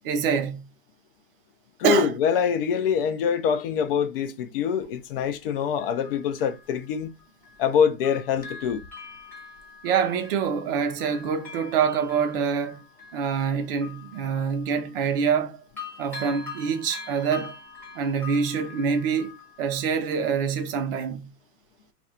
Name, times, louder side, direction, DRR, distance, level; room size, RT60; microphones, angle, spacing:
voice 1, 0.0-0.6 1.8-2.1 9.8-12.8 13.1-15.6 16.0-17.5 18.0-21.3, right 6 dB, 40° right, 0.5 m, -25 dB
voice 2, 1.8-7.1 7.6-8.8, left 7 dB, 40° left, 0.5 m, -24 dB
Bell, 4.8-4.9 5.8-7.7 8.0-15.5 15.8-20.4 20.8-20.9, left 4 dB, 5° left, 0.9 m, -44 dB
2.5 x 2.3 x 4.1 m
hypercardioid pair, 140°, 47 cm